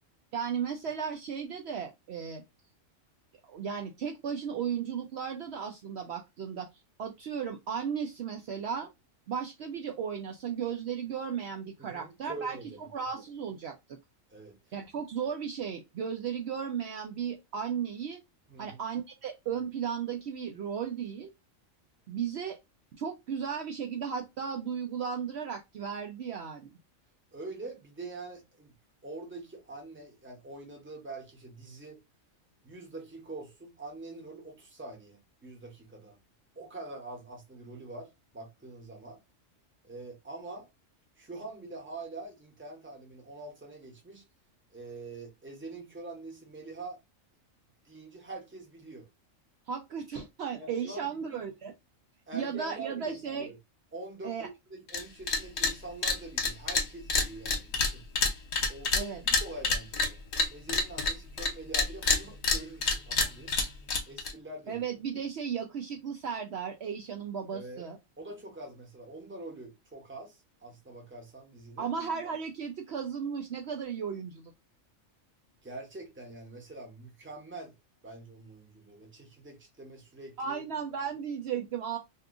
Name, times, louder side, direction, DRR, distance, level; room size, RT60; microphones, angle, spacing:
voice 1, 0.3-2.4 3.4-6.7 7.0-8.9 9.3-12.6 12.9-14.0 14.7-18.2 18.6-21.3 22.1-22.6 22.9-26.7 49.7-51.7 52.3-53.5 54.2-54.5 58.9-59.2 64.7-68.0 71.8-74.5 80.4-82.0, right 7 dB, 65° right, 0.7 m, -35 dB
voice 2, 11.8-12.9 14.3-14.6 18.5-18.8 27.3-28.7 29.0-32.0 32.6-36.2 36.6-38.1 38.3-39.2 39.8-40.7 41.2-44.2 44.7-47.0 47.8-49.1 50.6-51.5 52.3-53.6 53.9-54.4 54.7-58.0 58.7-60.2 60.5-63.5 64.1-64.8 67.5-67.9 68.2-71.9 75.6-77.7 78.0-80.6, right 2 dB, 10° right, 0.8 m, -44 dB
sound 1, 54.9-55.0 55.3-55.7 56.0-61.5 61.7-64.3, left 4 dB, 60° left, 1.1 m, -27 dB
2.7 x 2.4 x 3.5 m
omnidirectional pair, 1.4 m